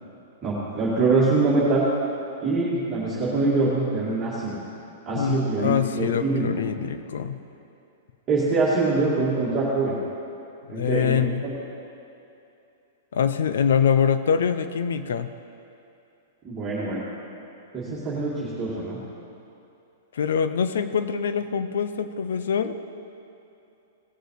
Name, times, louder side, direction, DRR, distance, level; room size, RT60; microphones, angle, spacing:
voice 1, 0.4-1.9 2.4-4.6 5.1-6.5 8.3-10.0 10.7-11.5 16.4-17.0 17.7-19.0, right 3 dB, 15° right, -10 dB, 2.2 m, -24 dB
voice 2, 5.1-7.4 10.7-11.5 13.1-15.3 20.1-22.8, left 7 dB, 85° left, 11 dB, 0.7 m, -24 dB
18.5 x 6.8 x 4.8 m, 2.8 s
supercardioid pair, 165°, 0 cm